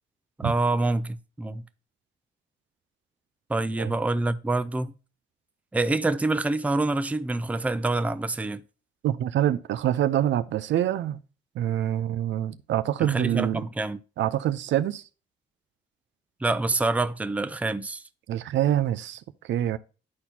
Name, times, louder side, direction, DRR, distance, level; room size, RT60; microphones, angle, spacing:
voice 1, 0.4-1.6 3.5-4.9 5.7-8.6 13.0-14.0 16.4-18.0, right 2 dB, 5° right, 0.4 m, -26 dB
voice 2, 9.0-11.2 11.6-13.6 14.2-15.0 18.3-19.8, right 12 dB, 70° right, 0.5 m, -26 dB
11.0 x 4.3 x 2.7 m
cardioid pair, 90°, 20 cm